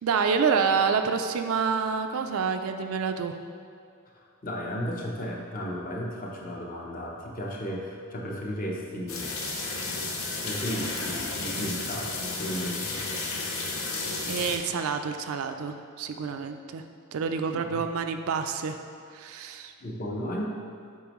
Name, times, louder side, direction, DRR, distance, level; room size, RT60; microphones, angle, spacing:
voice 1, 0.0-3.4 11.6-11.8 14.3-16.8 17.1-18.8 19.1-19.7, right 5 dB, 70° right, 7 dB, 0.4 m, -28 dB
voice 2, 4.4-9.3 10.4-13.0 17.7-17.8 19.8-20.5, equal, 40° left, -2 dB, 0.8 m, -34 dB
sound 1, 9.1-14.6, left 3 dB, 70° left, 0.9 m, -32 dB
8.3 x 4.3 x 3.0 m, 2.3 s
head